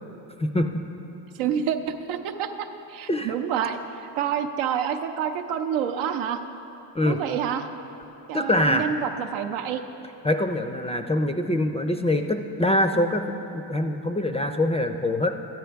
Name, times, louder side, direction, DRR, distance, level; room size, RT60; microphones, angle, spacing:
voice 1, 1.3-6.4 7.1-7.7 8.3-9.8, right 8 dB, 90° right, 7 dB, 0.7 m, -28 dB
voice 2, 8.3-8.9 10.2-15.4, left 1 dB, 15° left, 6 dB, 0.3 m, -24 dB
13.5 x 8.9 x 3.4 m, 3.0 s
cardioid pair, 80°, 47 cm